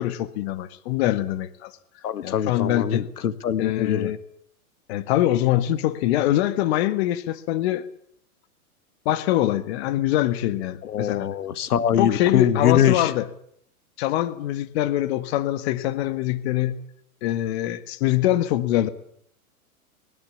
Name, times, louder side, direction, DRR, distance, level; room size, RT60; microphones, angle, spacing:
voice 1, 0.0-1.7 2.2-3.0 3.6-4.2 4.9-7.9 9.0-11.3 12.0-13.3 14.0-16.8 17.2-18.9, left 13 dB, 45° left, 12 dB, 1.6 m, -23 dB
voice 2, 2.0-4.1 10.8-13.1, left 9 dB, 80° left, 12 dB, 2.0 m, -23 dB
24.0 x 20.5 x 8.5 m, 0.68 s
hypercardioid pair, 145°, 45 cm